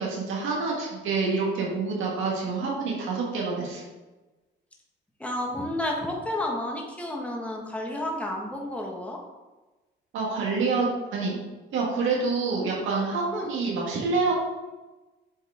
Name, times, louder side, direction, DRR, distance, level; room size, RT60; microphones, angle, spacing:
voice 1, 0.0-3.8 10.1-11.4 11.7-14.3, right 4 dB, 80° right, -2 dB, 1.7 m, -27 dB
voice 2, 5.2-9.2 13.3-13.5, left 1 dB, 5° left, -1 dB, 1.4 m, -31 dB
8.1 x 3.7 x 3.6 m, 1.1 s
cardioid pair, 90°, 20 cm